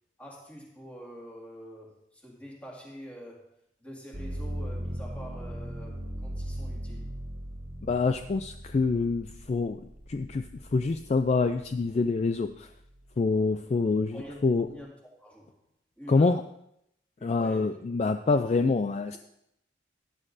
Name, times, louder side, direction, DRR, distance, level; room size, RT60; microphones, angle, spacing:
voice 1, 0.2-3.5 3.8-7.1 14.1-15.6 16.0-16.4 17.2-17.8 18.2-18.5 19.1-19.2, equal, 10° left, -2 dB, 2.1 m, -46 dB
sound 1, 4.1-11.9 12.4-13.2, equal, 75° right, 1.7 m, -39 dB
voice 2, 7.8-9.8 10.1-10.5 10.7-12.7 13.2-14.2 14.4-14.7 16.1-16.4 17.2-19.2, left 3 dB, 35° left, 8 dB, 0.3 m, -26 dB
16.0 x 9.7 x 2.6 m, 0.75 s
head